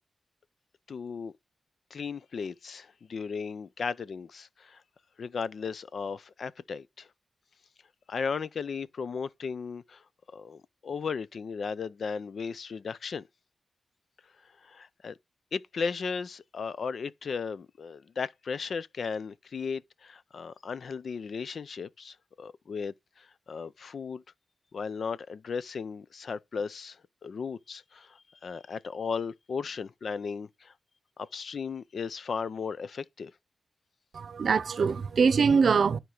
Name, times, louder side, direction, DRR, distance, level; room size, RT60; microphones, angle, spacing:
voice 1, 0.9-1.3 1.9-4.8 5.2-7.1 8.1-10.0 10.3-13.2 14.6-15.2 15.5-24.2 24.7-30.7 31.2-33.3, left 5 dB, 75° left, 0.5 m, -36 dB
voice 2, 34.1-36.0, right 5 dB, 75° right, 0.6 m, -23 dB
11.0 x 4.5 x 3.8 m
cardioid pair, 55°, 0 cm